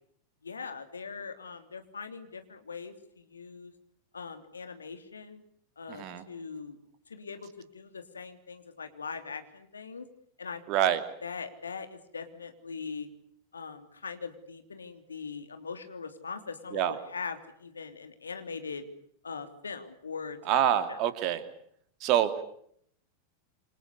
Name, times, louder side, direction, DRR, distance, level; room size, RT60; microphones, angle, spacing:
voice 1, 0.4-3.7 4.1-5.4 5.8-6.8 7.1-10.0 10.4-10.9 11.2-13.1 13.5-18.9 19.2-21.0, left 5 dB, 75° left, 8 dB, 3.3 m, -41 dB
voice 2, 5.9-6.2 10.7-11.0 16.7-17.0 20.5-21.4 22.0-22.4, right 10 dB, 40° right, 10 dB, 2.9 m, -26 dB
28.5 x 25.5 x 6.8 m, 0.67 s
figure-of-eight pair, 90°, 0 cm